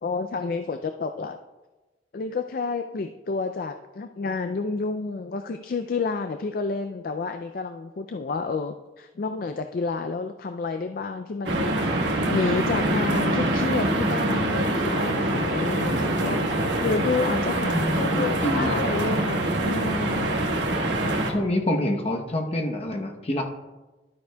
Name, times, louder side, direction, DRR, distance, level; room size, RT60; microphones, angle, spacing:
voice 1, 0.0-1.4 2.1-16.5 16.8-20.3, left 4 dB, 50° left, 8 dB, 0.3 m, -30 dB
sound 1, 11.4-21.3, right 1 dB, 85° right, 1.2 m, -24 dB
voice 2, 17.6-18.8 21.0-23.4, left 1 dB, 35° left, 2 dB, 0.9 m, -27 dB
12.0 x 9.3 x 2.3 m, 1.1 s
head